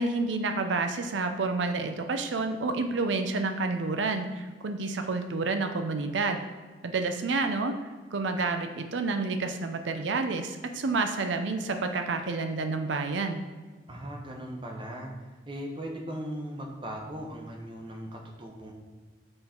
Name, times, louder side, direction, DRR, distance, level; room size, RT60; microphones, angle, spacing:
voice 1, 0.0-6.4 6.8-7.8 8.1-13.4, right 3 dB, 85° right, 6 dB, 0.5 m, -29 dB
voice 2, 13.9-18.7, equal, 25° right, 1 dB, 0.9 m, -38 dB
7.8 x 3.8 x 4.4 m, 1.4 s
head